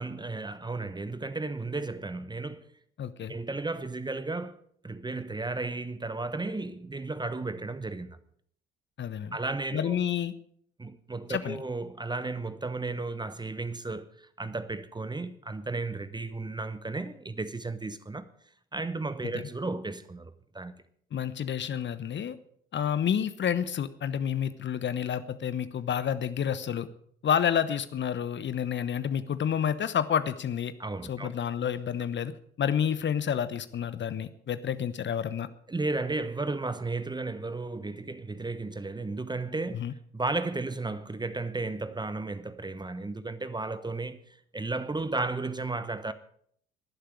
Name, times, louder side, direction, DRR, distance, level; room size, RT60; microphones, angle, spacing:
voice 1, 0.0-2.7 3.3-8.2 9.3-10.0 10.8-18.3 18.7-20.8 30.8-31.3 35.7-39.8 40.1-46.1, right 3 dB, 15° right, 1.0 m, -34 dB
voice 2, 3.0-3.3 9.0-9.4 9.7-10.3 11.3-11.6 19.2-19.3 21.1-22.4 22.7-26.9 27.2-30.7 31.1-32.3 32.6-35.5 39.7-39.9, left 8 dB, 40° left, 1.1 m, -29 dB
20.5 x 11.5 x 4.8 m
figure-of-eight pair, 50°, 30 cm